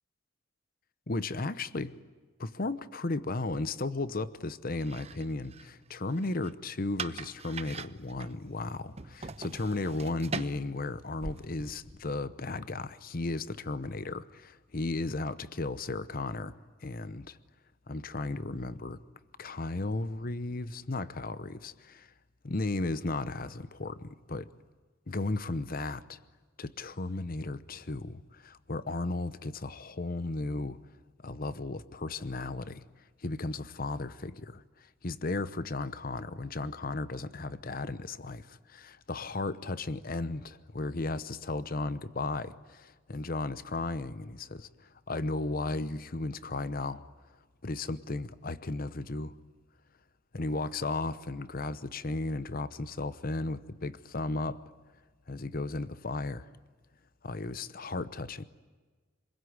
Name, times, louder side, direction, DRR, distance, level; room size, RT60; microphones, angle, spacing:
voice 1, 1.1-2.0 2.4-17.4 17.9-19.0 19.4-22.1 22.4-24.5 25.1-26.2 26.6-30.8 31.2-32.8 33.2-47.0 47.6-49.3 50.3-54.6 55.3-56.5 57.2-58.5, left 2 dB, 45° left, 0.9 m, -35 dB
sound 1, 4.7-12.1, right 4 dB, 35° right, 0.9 m, -43 dB
27.0 x 21.5 x 9.6 m
head